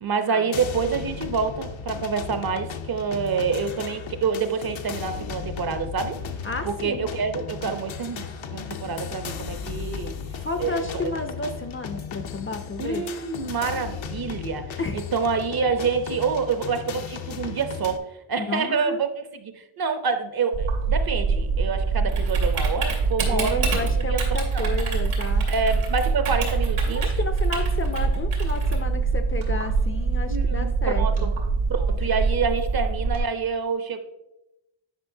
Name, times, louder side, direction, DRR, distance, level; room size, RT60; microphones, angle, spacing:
voice 1, 0.0-6.2 6.6-10.1 10.6-11.1 12.8-18.0 18.3-24.2 24.5-24.7 25.5-27.1 30.3-31.3 31.7-34.0, right 5 dB, 50° right, 8 dB, 0.7 m, -27 dB
sound 1, 0.5-18.0, left 7 dB, 70° left, 0.7 m, -35 dB
voice 2, 6.4-7.1 10.3-13.0 14.8-15.0 18.4-19.0 23.3-25.5 26.8-31.3, left 3 dB, 25° left, 6 dB, 0.5 m, -32 dB
Typing, 20.5-33.2, right 4 dB, 90° right, 2.4 m, -24 dB
9.8 x 5.2 x 2.7 m, 0.88 s
cardioid pair, 105°, 48 cm